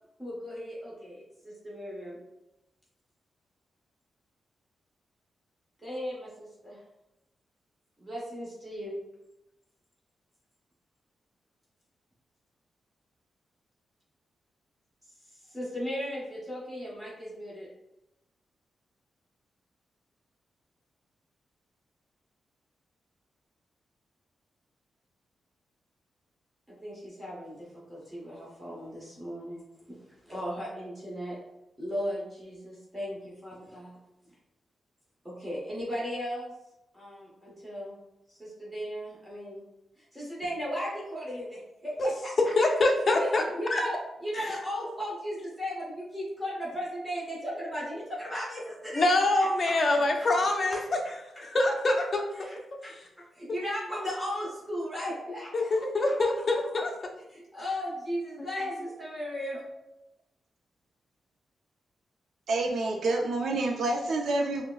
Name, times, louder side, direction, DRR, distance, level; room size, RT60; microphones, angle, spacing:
voice 1, 0.2-2.2 5.8-6.8 8.0-8.9 15.4-17.7 26.7-29.6 30.1-31.4 31.8-34.0 35.2-36.5 36.9-38.0 38.3-39.6 40.0-42.7 43.1-49.1 49.4-49.7 50.7-50.8 52.3-52.9 53.3-55.7 57.3-59.6, equal, 15° right, -7 dB, 1.2 m, -36 dB
voice 2, 42.6-43.4 43.7-43.8 48.9-51.0 51.4-52.2 55.5-56.9, left 2 dB, 40° left, 2 dB, 0.6 m, -25 dB
voice 3, 62.5-64.6, right 2 dB, 70° right, 1 dB, 0.6 m, -28 dB
5.4 x 2.2 x 2.3 m, 0.91 s
wide cardioid pair, 115°, 0 cm